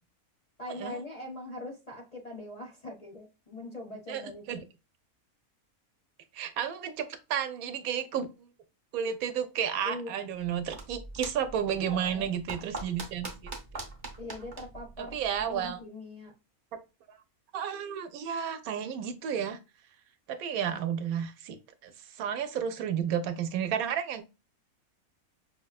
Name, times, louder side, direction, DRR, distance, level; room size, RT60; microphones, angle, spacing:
voice 1, 0.6-4.6 9.8-10.2 11.8-12.3 14.2-16.3, left 1 dB, 40° left, 0.6 m, -42 dB
voice 2, 6.3-8.3 8.9-13.8 15.0-15.8 17.5-19.6 20.3-24.2, right 8 dB, 80° right, 1.0 m, -32 dB
sound 1, 10.6-15.7, right 3 dB, 35° right, 0.7 m, -43 dB
5.7 x 2.1 x 2.3 m
omnidirectional pair, 1.5 m